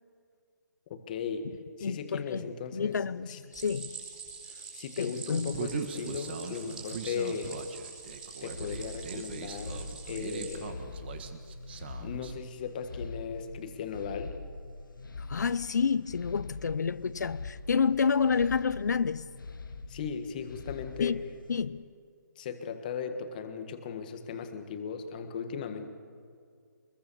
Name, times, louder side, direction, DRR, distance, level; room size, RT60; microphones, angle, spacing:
voice 1, 0.9-1.5 1.8-2.9 3.3-3.4 4.7-7.6 8.4-10.8 12.0-14.4 19.9-21.2 22.4-25.9, left 6 dB, 25° left, 1.6 m, -37 dB
voice 2, 1.8-2.4 2.7-3.9 5.0-5.6 15.3-19.3 21.0-21.2 21.5-21.9, left 6 dB, 60° left, 0.8 m, -29 dB
Stream, 3.5-10.5, right 5 dB, 10° right, 4.7 m, -45 dB
Human voice, 5.5-12.3, right 7 dB, 30° right, 1.5 m, -40 dB
sound 1, 8.5-21.6, left 3 dB, 90° left, 1.7 m, -43 dB
24.5 x 21.5 x 7.0 m
hypercardioid pair, 170°, 11 cm